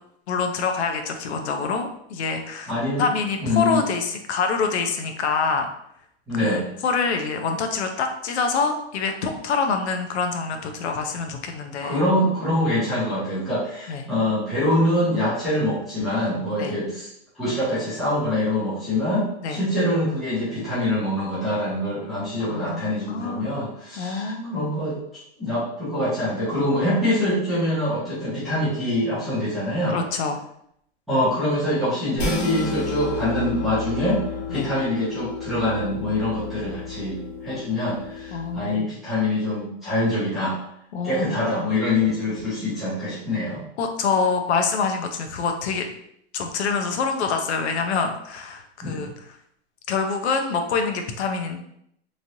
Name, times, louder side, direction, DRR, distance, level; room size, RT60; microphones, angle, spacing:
voice 1, 0.3-2.7 3.0-5.7 6.4-12.0 13.9-14.1 16.6-16.7 19.4-19.6 22.5-23.5 24.0-24.7 29.9-30.4 34.5-34.7 38.3-38.9 40.9-41.7 43.8-45.9 46.3-49.4 49.9-51.6, left 5 dB, 85° left, 6 dB, 0.6 m, -26 dB
voice 2, 2.7-3.0 3.4-3.8 6.3-6.7 11.8-17.1 17.4-25.0 25.4-30.0 31.1-34.2 34.5-40.6 41.0-43.6 48.8-49.0, left 1 dB, ahead, -15 dB, 0.3 m, -24 dB
sound 1, 32.2-38.6, left 4 dB, 50° left, 0.9 m, -32 dB
3.1 x 2.7 x 2.6 m, 0.72 s
supercardioid pair, 175°, 33 cm